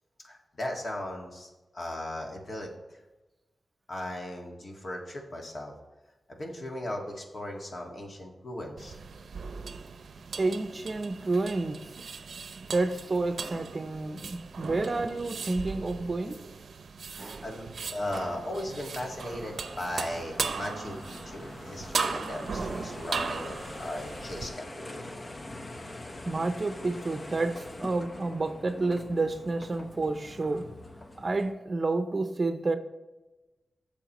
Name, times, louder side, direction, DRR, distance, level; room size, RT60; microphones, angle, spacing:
voice 1, 0.2-3.0 3.9-5.7 6.3-9.0 17.0-25.2, left 1 dB, 50° left, 1.9 m, -37 dB
sound 1, 8.8-24.5, right 5 dB, 75° right, 0.6 m, -38 dB
voice 2, 10.4-12.1 12.7-16.4 17.2-17.4 26.2-30.7 31.2-32.7, right 3 dB, 40° right, 0.7 m, -30 dB
sound 2, 18.9-31.5, left 1 dB, 35° left, 1.0 m, -44 dB
14.0 x 7.2 x 3.1 m
wide cardioid pair, 85°, 0 cm